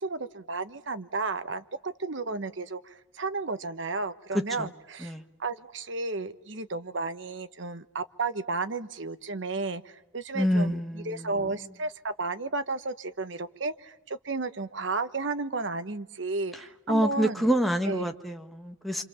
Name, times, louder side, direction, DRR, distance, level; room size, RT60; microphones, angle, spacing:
voice 1, 0.0-5.1 5.4-17.5 17.9-18.1, right 3 dB, 70° right, 11 dB, 1.1 m, -33 dB
voice 2, 4.3-4.7 5.0-5.2 10.3-11.3 16.5-16.6 16.9-19.0, equal, ahead, 4 dB, 1.4 m, -27 dB
27.0 x 26.5 x 7.1 m, 0.84 s
head